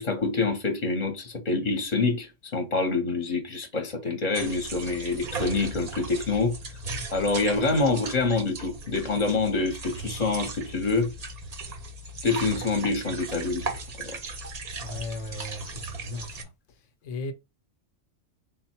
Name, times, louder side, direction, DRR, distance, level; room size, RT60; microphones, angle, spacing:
voice 1, 0.0-6.5 7.1-11.1 12.2-13.7 14.0-14.1, left 3 dB, 40° left, 0.8 m, -26 dB
sound 1, 4.3-16.4, right 3 dB, 45° right, 0.6 m, -37 dB
voice 2, 14.8-16.5 17.0-17.3, left 2 dB, 85° left, 1.0 m, -36 dB
3.7 x 2.1 x 4.3 m
omnidirectional pair, 1.3 m